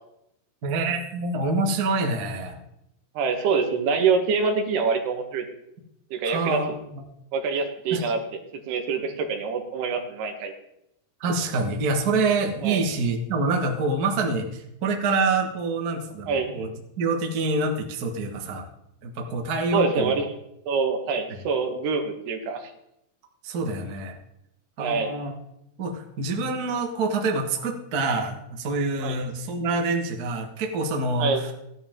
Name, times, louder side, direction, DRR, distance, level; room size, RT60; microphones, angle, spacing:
voice 1, 0.6-2.6 6.2-7.0 7.9-8.1 11.2-16.7 17.0-18.7 19.0-20.2 21.3-21.4 23.4-24.1 24.8-25.3 25.8-31.5, right 3 dB, 60° right, 2 dB, 1.0 m, -26 dB
voice 2, 3.2-5.5 6.1-6.8 7.3-8.2 8.7-10.5 12.6-12.8 16.3-16.7 19.7-20.3 20.7-22.7 24.8-25.1 29.0-29.2 31.2-31.4, right 5 dB, 85° right, 4 dB, 3.5 m, -25 dB
15.5 x 11.0 x 3.7 m, 0.81 s
omnidirectional pair, 4.5 m